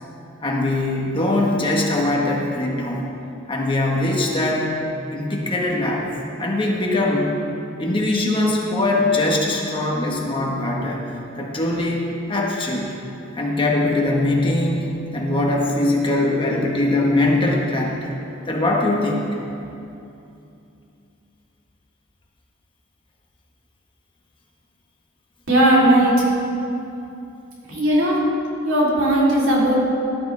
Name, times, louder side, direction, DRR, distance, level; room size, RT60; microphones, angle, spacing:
voice 1, 0.4-3.0 3.5-4.7 5.1-6.0 6.4-7.3 7.8-11.0 11.4-12.0 12.3-12.9 13.3-14.9 15.1-18.1 18.5-19.2, left 2 dB, 25° left, -2 dB, 1.5 m, -21 dB
voice 2, 25.5-26.2 27.7-28.2 28.6-29.8, right 1 dB, 65° right, -6 dB, 3.7 m, -17 dB
17.5 x 12.0 x 3.5 m, 2.7 s
head